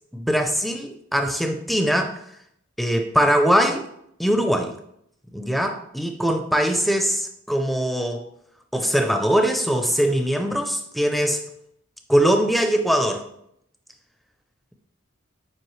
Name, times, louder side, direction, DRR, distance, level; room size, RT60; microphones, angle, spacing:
voice 1, 0.1-2.1 2.8-3.9 4.2-4.7 5.3-8.2 8.7-11.4 12.1-13.2, equal, ahead, 5 dB, 0.5 m, -21 dB
7.7 x 5.0 x 3.2 m, 0.74 s
head